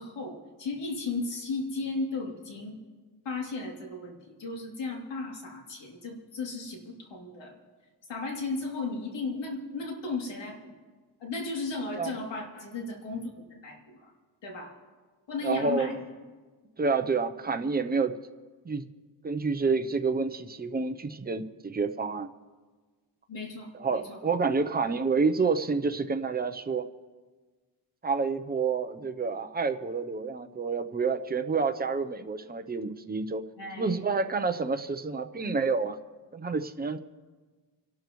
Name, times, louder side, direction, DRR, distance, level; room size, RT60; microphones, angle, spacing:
voice 1, 0.0-2.7 3.2-7.6 8.1-10.7 11.2-14.1 14.4-14.7 15.3-16.0 23.3-24.2 24.6-24.9 33.6-34.0, left 3 dB, 75° left, 0 dB, 2.9 m, -35 dB
voice 2, 15.4-16.0 16.8-18.1 18.6-18.9 19.2-22.3 23.7-26.9 28.0-33.4 33.8-36.0 36.3-37.0, right 4 dB, 20° right, 7 dB, 0.7 m, -28 dB
28.5 x 12.0 x 3.1 m, 1.4 s
wide cardioid pair, 135°, 43 cm